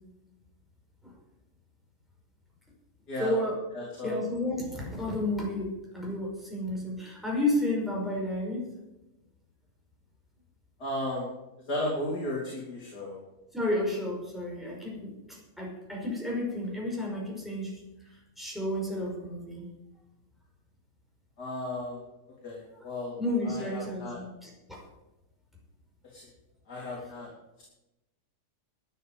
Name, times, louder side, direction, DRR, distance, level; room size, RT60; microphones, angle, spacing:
voice 1, 3.2-3.5 4.0-8.7 13.5-19.7 23.2-24.8, left 1 dB, ahead, -3 dB, 5.5 m, -32 dB
voice 2, 3.7-4.2 10.8-11.3 11.7-13.2 21.4-22.0 22.4-23.2 23.4-24.2 26.1-26.2 26.7-27.3, left 1 dB, 85° left, -4 dB, 4.0 m, -34 dB
12.5 x 9.9 x 7.8 m, 0.96 s
omnidirectional pair, 1.7 m